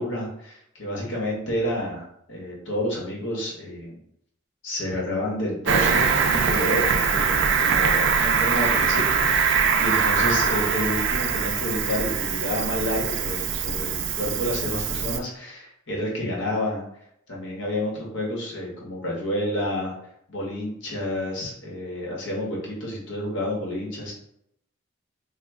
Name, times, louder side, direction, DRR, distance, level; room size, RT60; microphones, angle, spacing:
voice 1, 0.0-4.0 4.6-16.8 17.3-19.9 20.3-24.1, left 1 dB, 65° left, -2 dB, 1.0 m, -29 dB
Cricket, 5.6-15.2, right 6 dB, 60° right, 0.3 m, -23 dB
2.9 x 2.2 x 3.4 m, 0.72 s
head